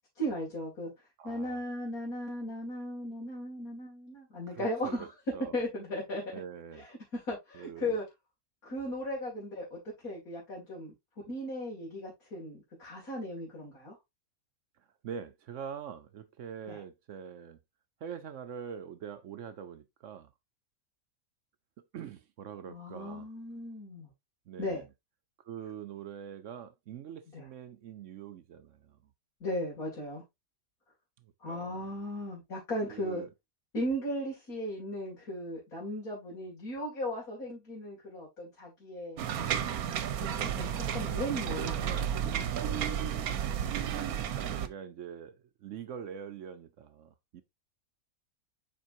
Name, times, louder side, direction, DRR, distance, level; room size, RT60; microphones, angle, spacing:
voice 1, 0.2-0.9 1.2-5.1 5.5-6.3 6.8-8.0 8.6-10.9 11.3-14.0 16.7-16.8 22.7-24.1 24.6-24.8 27.3-27.5 29.4-30.2 31.4-33.3 33.7-39.3 40.1-42.0 43.3-43.4, equal, 75° left, 3.0 m, -37 dB
voice 2, 1.2-1.6 4.5-5.0 5.3-5.5 6.3-6.8 7.5-8.0 15.0-17.6 18.0-20.3 21.9-23.3 24.5-24.8 25.5-28.8 31.4-31.9 32.9-33.3 40.4-40.7 41.0-41.2 41.6-43.1 43.9-45.4 45.6-47.4, right 8 dB, 65° right, 0.9 m, -44 dB
sound 1, 39.2-44.7, right 9 dB, 85° right, 1.2 m, -32 dB
7.5 x 5.1 x 2.6 m
omnidirectional pair, 1.5 m